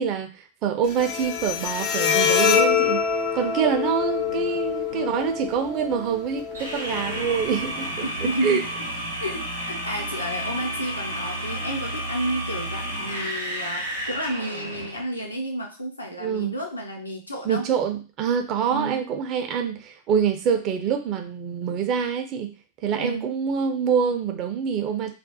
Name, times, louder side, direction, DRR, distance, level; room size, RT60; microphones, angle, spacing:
voice 1, 0.0-3.0 3.3-7.9 8.2-8.6 16.2-16.5 17.4-22.5 22.8-25.1, right 7 dB, 40° right, 6 dB, 0.4 m, -25 dB
Bowed string instrument, 0.8-7.9, left 7 dB, 40° left, 0.3 m, -25 dB
voice 2, 4.2-5.2 8.0-8.7 9.2-17.7 18.7-19.0 23.0-23.3, right 1 dB, 85° left, 1 dB, 0.6 m, -31 dB
sound 1, 6.5-15.0, right 1 dB, 85° right, 0.7 m, -31 dB
2.4 x 2.0 x 2.7 m, 0.32 s
figure-of-eight pair, 90°, 0 cm